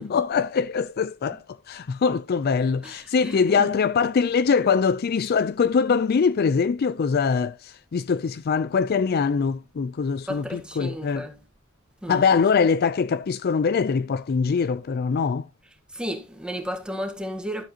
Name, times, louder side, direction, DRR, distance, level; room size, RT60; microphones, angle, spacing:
voice 1, 0.0-11.3 12.1-15.5, left 5 dB, 50° left, 0.4 m, -23 dB
voice 2, 2.8-3.7 10.3-11.4 12.0-12.3 15.9-17.6, equal, 5° right, 1.6 m, -33 dB
12.0 x 7.4 x 2.8 m
head